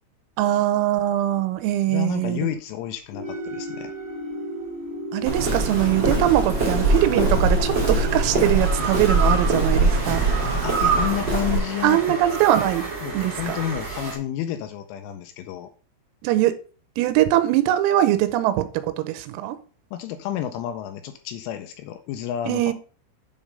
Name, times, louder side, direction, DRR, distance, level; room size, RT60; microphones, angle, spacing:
voice 1, 0.4-2.5 5.1-10.3 11.8-12.8 13.1-13.6 16.2-16.5 17.0-19.6 22.5-22.7, right 13 dB, 90° right, 3.4 m, -22 dB
voice 2, 1.9-3.9 10.6-12.2 13.0-15.7 19.9-22.7, left 11 dB, 85° left, 2.9 m, -30 dB
sound 1, 3.1-8.4, equal, 70° left, 2.8 m, -34 dB
sound 2, 3.2-4.7 6.6-14.1, right 5 dB, 15° right, 1.3 m, -30 dB
Walk footsteps, 5.2-11.6, right 2 dB, 40° right, 1.6 m, -22 dB
8.8 x 3.7 x 5.2 m
omnidirectional pair, 6.0 m